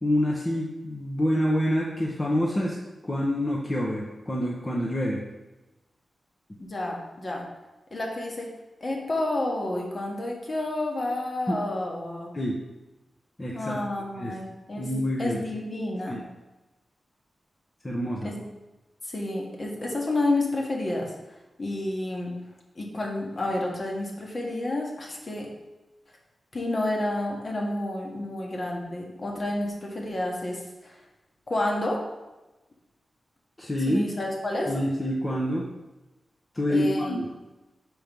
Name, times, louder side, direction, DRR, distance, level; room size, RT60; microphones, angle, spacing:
voice 1, 0.0-2.8 3.0-5.2 11.5-11.6 12.3-12.6 13.4-13.8 14.2-14.3 14.8-15.4 16.1-16.2 17.8-18.3 33.6-34.0 34.7-35.7 36.5-37.3, equal, 20° left, -3 dB, 0.8 m, -27 dB
voice 2, 6.6-7.5 7.9-8.5 8.8-12.3 13.5-14.9 15.2-16.2 18.2-18.4 19.0-21.1 21.6-22.3 22.7-25.5 26.5-31.0 31.5-32.0 33.9-34.7 36.7-37.3, left 1 dB, 40° left, -1 dB, 1.4 m, -30 dB
5.1 x 4.6 x 5.3 m, 1.1 s
wide cardioid pair, 100°, 0 cm